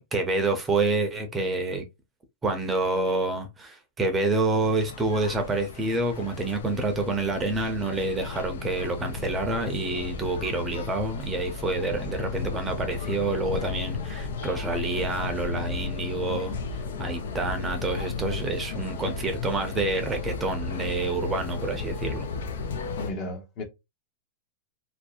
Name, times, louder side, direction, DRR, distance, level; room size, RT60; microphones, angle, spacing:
voice 1, 0.1-1.8 2.4-16.6 17.0-22.3, right 2 dB, 15° right, 0.5 m, -28 dB
sound 1, 4.6-23.1, left 4 dB, 85° left, 0.5 m, -35 dB
voice 2, 18.8-19.1 23.0-23.6, left 2 dB, 40° left, 0.8 m, -35 dB
2.6 x 2.0 x 2.3 m
supercardioid pair, 140°, 0 cm